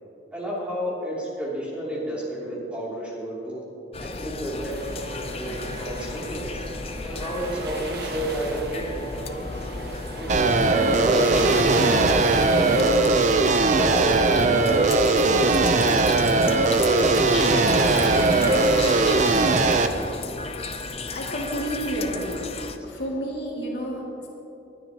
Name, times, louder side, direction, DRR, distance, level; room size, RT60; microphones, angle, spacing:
voice 1, 0.3-3.6 4.0-5.0 5.3-6.6 7.0-9.5 10.2-12.8 13.6-16.1 16.9-18.5, right 1 dB, 5° right, -7 dB, 2.8 m, -31 dB
sound 1, 3.9-22.8, left 3 dB, 35° left, 0.5 m, -35 dB
sound 2, 4.6-20.2, right 1 dB, 60° right, 1.3 m, -35 dB
sound 3, 10.3-19.9, right 3 dB, 40° right, 0.5 m, -20 dB
voice 2, 21.1-22.5 22.8-24.3, equal, 65° left, -3 dB, 2.3 m, -30 dB
21.0 x 9.9 x 2.9 m, 3.0 s
head